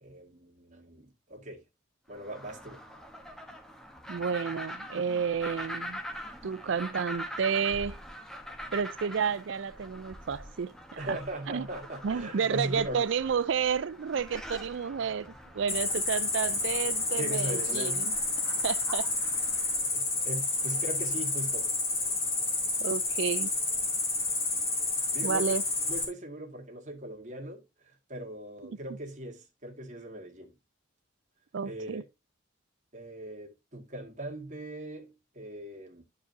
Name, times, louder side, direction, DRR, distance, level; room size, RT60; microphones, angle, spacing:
voice 1, 0.0-1.6 2.1-2.8 11.0-13.0 17.2-18.0 19.9-21.7 25.1-25.5 25.9-30.5 31.6-32.1 32.9-36.0, right 1 dB, 35° right, 1.9 m, -39 dB
sound 1, 2.1-19.9, equal, ahead, 1.0 m, -44 dB
voice 2, 4.1-6.0 6.4-8.0 8.7-11.2 11.5-11.7 12.0-18.1 18.6-19.1 22.8-23.5 25.2-25.6 28.6-28.8 31.5-32.0, right 6 dB, 65° right, 0.4 m, -31 dB
Cricket, 15.7-26.0, left 3 dB, 30° left, 2.6 m, -30 dB
12.0 x 4.8 x 2.7 m
head